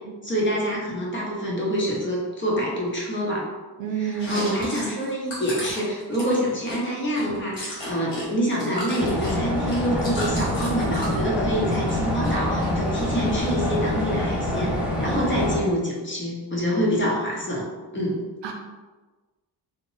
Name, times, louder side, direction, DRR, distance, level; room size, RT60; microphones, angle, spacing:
voice 1, 0.2-3.4 4.0-17.7 17.9-18.2, equal, 25° left, -4 dB, 0.7 m, -26 dB
voice 2, 3.8-4.5 18.4-18.5, right 8 dB, 80° right, 2 dB, 0.6 m, -29 dB
Chewing mastication, 4.1-8.3 8.5-11.2 11.6-12.3 12.6-13.5, equal, 85° left, 1.4 m, -35 dB
sound 1, 9.0-15.6, left 1 dB, 5° right, 0.5 m, -26 dB
2.7 x 2.1 x 3.0 m, 1.3 s
cardioid pair, 110°, 43 cm